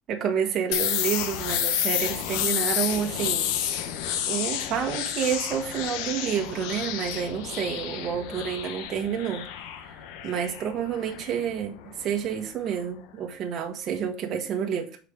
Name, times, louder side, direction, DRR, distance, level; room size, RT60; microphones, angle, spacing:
voice 1, 0.1-3.5 4.3-9.5 9.8-9.9 10.2-14.9, right 8 dB, 50° right, 1.4 m, -29 dB
sound 1, 0.7-12.3, left 10 dB, 80° left, 1.2 m, -30 dB
6.5 x 5.0 x 5.0 m
supercardioid pair, 95°, 0 cm